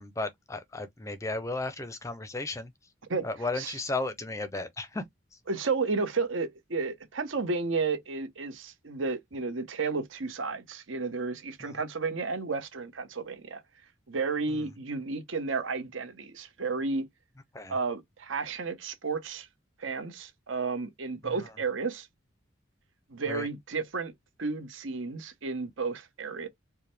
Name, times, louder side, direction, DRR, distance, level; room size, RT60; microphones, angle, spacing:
voice 1, 0.0-2.7 3.2-5.0 11.6-11.7 14.5-14.7 17.5-17.8 21.2-21.3 23.3-23.5, left 2 dB, 15° left, 0.5 m, -34 dB
voice 2, 5.5-13.6 14.1-17.0 17.7-19.5 19.8-22.1 23.1-24.1 24.4-26.5, right 4 dB, 75° right, 0.9 m, -32 dB
4.7 x 2.1 x 3.3 m
head